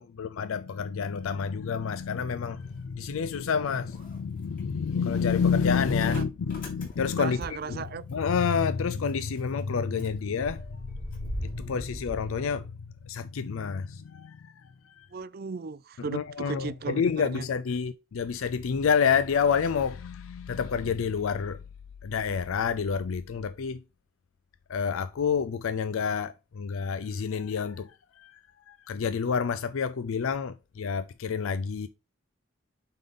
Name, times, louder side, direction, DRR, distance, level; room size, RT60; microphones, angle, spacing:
voice 1, 0.0-7.4 7.7-15.1 16.0-21.6 22.0-23.8 24.7-28.4 28.7-31.9, left 6 dB, 80° left, 0.4 m, -29 dB
Motor vehicle (road) / Engine starting, 2.2-3.5 3.8-8.4 8.7-8.8 9.1-13.2, equal, 40° left, 3.0 m, -42 dB
voice 2, 7.2-8.0 15.1-17.4, right 4 dB, 45° right, 0.4 m, -36 dB
8.9 x 3.9 x 3.7 m
head